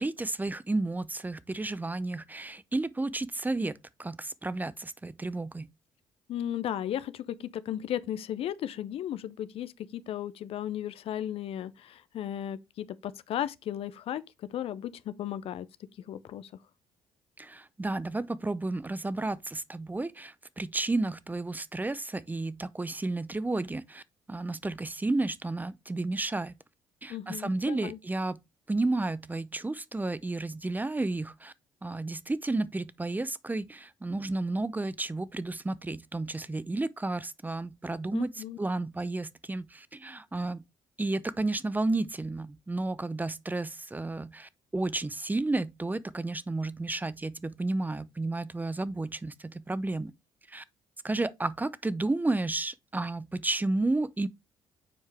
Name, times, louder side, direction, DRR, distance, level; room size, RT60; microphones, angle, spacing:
voice 1, 0.0-3.7 4.0-5.7 17.4-24.0 24.3-26.5 27.0-28.4 28.7-31.5 31.8-40.6 41.0-50.1 50.5-50.6 51.0-54.3, right 2 dB, 15° right, 0.5 m, -32 dB
voice 2, 6.3-14.2 14.5-15.7 16.1-16.5 27.1-28.0 38.1-38.6, left 11 dB, 60° left, 0.5 m, -35 dB
7.2 x 4.7 x 3.2 m
hypercardioid pair, 50°, 11 cm